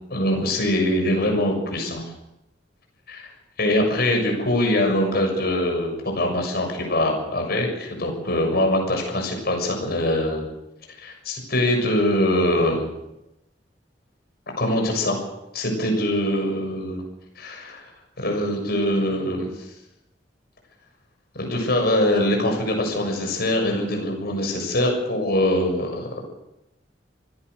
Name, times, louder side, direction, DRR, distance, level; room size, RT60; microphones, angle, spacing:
voice 1, 0.1-2.0 3.1-3.3 3.6-10.4 11.0-12.9 14.6-15.2 15.5-17.0 17.4-17.9 18.2-19.7 21.4-26.2, left 1 dB, 60° left, 2 dB, 6.8 m, -23 dB
25.5 x 17.5 x 6.7 m, 0.90 s
head